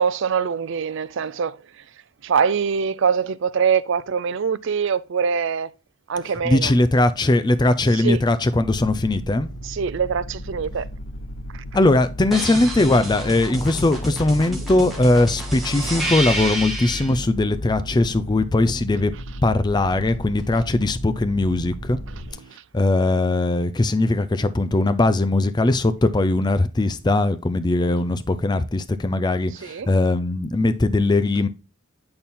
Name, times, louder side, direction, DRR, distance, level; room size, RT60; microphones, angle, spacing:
voice 1, 0.0-1.8 2.2-5.7 6.1-6.7 7.9-8.2 9.6-10.9 11.5-11.6 22.1-22.6 29.6-29.9, right 6 dB, 60° right, 0.4 m, -24 dB
voice 2, 6.4-9.5 11.7-19.1 19.4-22.0 22.7-31.5, left 2 dB, 20° left, 0.4 m, -20 dB
sound 1, 8.6-22.3, equal, 75° left, 1.0 m, -35 dB
sound 2, 12.3-17.1 19.9-21.0, right 1 dB, ahead, 1.6 m, -30 dB
8.7 x 4.3 x 3.5 m
head